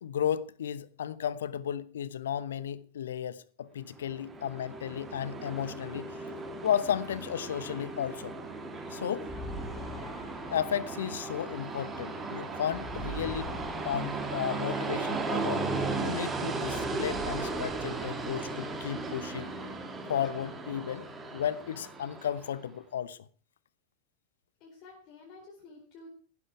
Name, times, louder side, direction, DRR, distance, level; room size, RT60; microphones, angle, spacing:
voice 1, 0.0-6.2 6.6-8.4 8.9-9.3 10.5-13.5 13.8-15.7 16.0-19.5 20.1-23.2, left 9 dB, 65° left, 1.0 m, -34 dB
Train, 4.0-22.6, right 3 dB, 15° right, 3.2 m, -36 dB
sound 1, 9.2-16.1 16.5-19.1, equal, 5° left, 7.9 m, -45 dB
voice 2, 9.3-9.7 24.6-26.1, left 3 dB, 40° left, 4.5 m, -52 dB
15.5 x 12.0 x 4.8 m
figure-of-eight pair, 90°, 0 cm